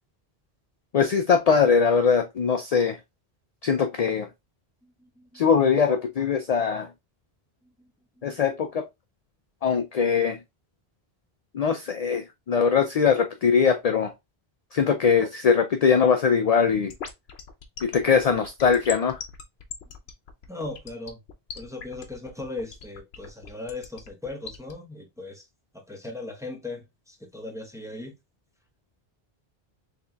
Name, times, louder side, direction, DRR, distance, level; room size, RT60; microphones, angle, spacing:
voice 1, 0.9-3.0 3.6-4.3 5.3-6.9 8.2-8.8 9.6-10.4 11.5-14.1 14.7-16.9 17.8-19.2, left 6 dB, 55° left, 0.5 m, -21 dB
voice 2, 4.8-5.4 8.2-8.4 20.5-21.2 21.5-25.4 25.7-28.1, left 2 dB, 5° right, 0.8 m, -38 dB
sound 1, 16.7-24.7, left 7 dB, 80° left, 1.0 m, -39 dB
4.2 x 3.6 x 2.3 m
omnidirectional pair, 1.0 m